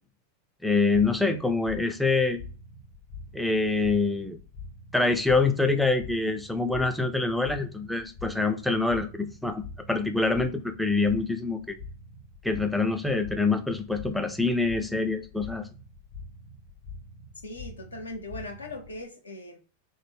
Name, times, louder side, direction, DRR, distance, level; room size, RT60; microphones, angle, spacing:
voice 1, 0.6-2.4 3.3-4.4 4.9-9.6 9.9-11.8 12.4-15.7, left 3 dB, ahead, 6 dB, 0.3 m, -25 dB
sound 1, 0.9-19.0, left 3 dB, 50° left, 1.2 m, -45 dB
voice 2, 17.4-19.6, left 2 dB, 75° left, 4 dB, 0.6 m, -39 dB
3.0 x 2.1 x 3.5 m, 0.36 s
figure-of-eight pair, 90°, 0 cm